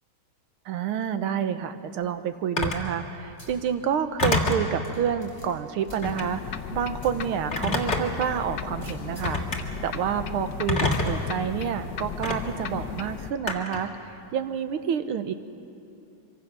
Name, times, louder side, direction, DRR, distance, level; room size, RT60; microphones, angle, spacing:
voice 1, 0.7-15.3, right 8 dB, 75° right, 10 dB, 1.8 m, -29 dB
Telephone, 2.6-2.9 4.2-4.7 6.0-6.3 7.5-8.3 9.2-9.6 10.7-11.2 12.2-12.4 13.5-13.9, left 2 dB, 30° left, 2.2 m, -26 dB
sound 1, 3.4-3.7 4.1-4.2 4.8-6.5 7.0-7.2 7.7-7.8 8.8-9.5 10.9-11.2, left 2 dB, 15° right, 4.5 m, -47 dB
sound 2, 6.0-13.3, left 7 dB, 65° left, 1.3 m, -36 dB
24.5 x 24.5 x 6.2 m, 2.9 s
omnidirectional pair, 2.4 m